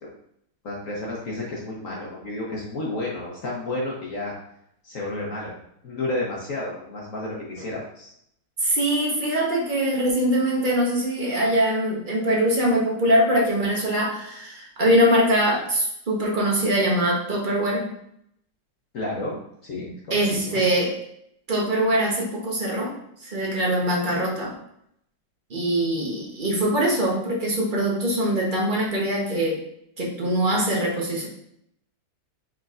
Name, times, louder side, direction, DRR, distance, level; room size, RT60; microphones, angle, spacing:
voice 1, 0.6-4.3 4.8-5.5 5.8-8.1 18.9-20.7, left 2 dB, 55° left, -4 dB, 1.1 m, -31 dB
voice 2, 8.6-17.9 20.1-21.0 21.5-22.9 23.2-24.5 25.5-29.6 30.0-31.3, right 1 dB, 35° right, -3 dB, 0.9 m, -22 dB
5.0 x 4.2 x 2.4 m, 0.74 s
omnidirectional pair, 1.9 m